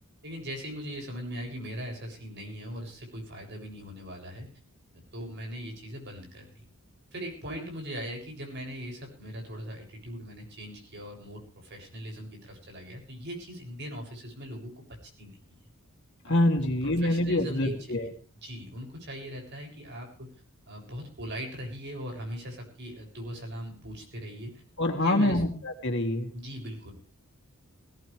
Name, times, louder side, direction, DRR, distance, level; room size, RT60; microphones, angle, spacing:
voice 1, 0.2-4.5 4.9-6.6 7.1-14.8 15.2-15.4 16.2-16.4 17.0-17.8 18.0-18.1 18.4-20.3 20.7-24.5 25.0-25.4 26.3-26.9, equal, 50° right, 1 dB, 7.4 m, -40 dB
voice 2, 16.2-18.1 24.8-25.5 25.8-26.3, left 1 dB, 55° left, 2 dB, 3.1 m, -25 dB
19.5 x 17.5 x 3.5 m, 0.40 s
head